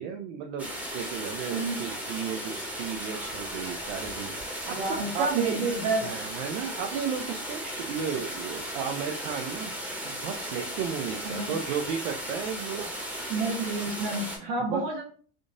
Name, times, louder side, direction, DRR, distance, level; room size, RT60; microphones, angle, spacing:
voice 1, 0.0-5.6 6.0-9.7 10.0-12.9 14.7-14.8, right 7 dB, 85° right, 3 dB, 0.5 m, -34 dB
sound 1, 0.6-14.4, equal, 5° right, 0.8 m, -36 dB
voice 2, 1.5-1.8 4.7-6.2 11.2-11.5 13.3-15.0, right 3 dB, 65° right, 0 dB, 1.3 m, -29 dB
3.6 x 2.5 x 2.5 m, 0.43 s
supercardioid pair, 120°, 34 cm